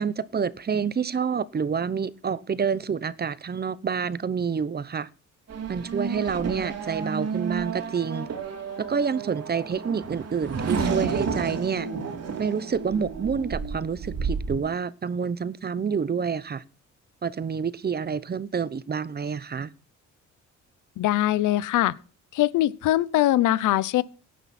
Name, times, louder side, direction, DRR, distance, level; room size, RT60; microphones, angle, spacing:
voice 1, 0.0-5.1 5.7-8.3 8.8-11.9 12.4-16.6 17.2-19.7, right 6 dB, 30° right, 0.8 m, -28 dB
Race car auto racing / Accelerating revving vroom, 5.5-14.6, right 5 dB, 55° right, 3.5 m, -31 dB
voice 2, 21.0-21.9 22.3-24.0, left 14 dB, 85° left, 0.9 m, -22 dB
17.0 x 10.5 x 4.3 m
cardioid pair, 90°, 30 cm